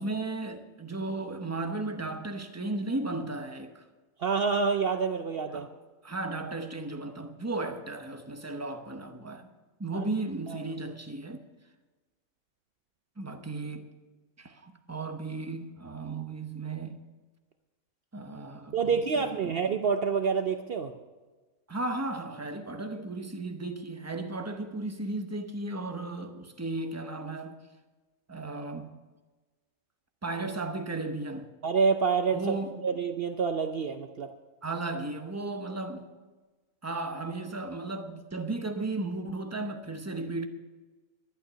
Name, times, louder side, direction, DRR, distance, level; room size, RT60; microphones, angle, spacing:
voice 1, 0.0-3.8 5.5-5.7 6.0-9.5 9.8-11.4 13.2-13.9 14.4-17.0 18.1-19.5 21.7-27.6 28.3-29.0 30.2-31.5 32.3-32.8 34.6-36.1 36.8-40.5, right 2 dB, 15° right, 0.7 m, -35 dB
voice 2, 4.2-5.7 9.9-10.0 10.5-10.6 18.7-20.9 31.6-32.4 32.8-34.3, right 5 dB, 55° right, 0.7 m, -27 dB
11.5 x 11.5 x 5.6 m
omnidirectional pair, 1.4 m